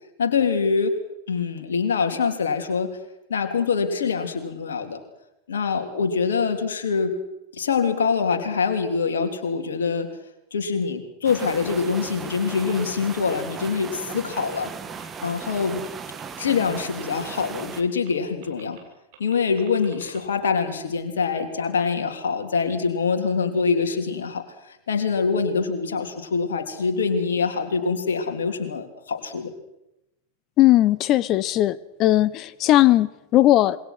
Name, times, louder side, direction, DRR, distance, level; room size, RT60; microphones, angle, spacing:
voice 1, 0.2-1.0 1.3-3.0 3.3-5.0 5.5-7.2 7.5-10.1 10.5-14.7 15.2-15.8 16.4-18.8 19.2-29.5, left 5 dB, 65° left, 5 dB, 3.5 m, -24 dB
sound 1, 11.2-17.8, right 6 dB, 20° right, 2.0 m, -37 dB
sound 2, 11.9-12.0 12.7-12.8 13.5-13.6 14.3-14.4 15.0-15.1 15.5-15.6 15.8-15.9 16.2-16.4 16.7-17.8 18.0-18.1 18.4-18.8 19.1-20.2, right 12 dB, 50° right, 6.4 m, -48 dB
voice 2, 30.6-33.8, left 14 dB, 35° left, 19 dB, 1.0 m, -18 dB
27.0 x 22.5 x 6.2 m, 0.88 s
figure-of-eight pair, 90°, 0 cm